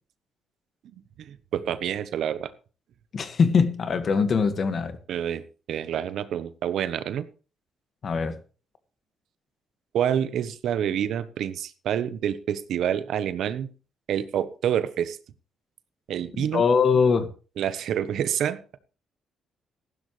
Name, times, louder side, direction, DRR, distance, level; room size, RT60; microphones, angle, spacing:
voice 1, 1.2-2.5 5.1-5.4 5.7-7.3 9.9-13.7 14.1-15.2 16.1-16.6 17.6-18.8, right 9 dB, 75° right, 1.0 m, -27 dB
voice 2, 3.1-5.0 8.0-8.3 16.4-17.3, left 5 dB, 50° left, 1.8 m, -22 dB
15.0 x 12.0 x 3.3 m
cardioid pair, 90°, 0 cm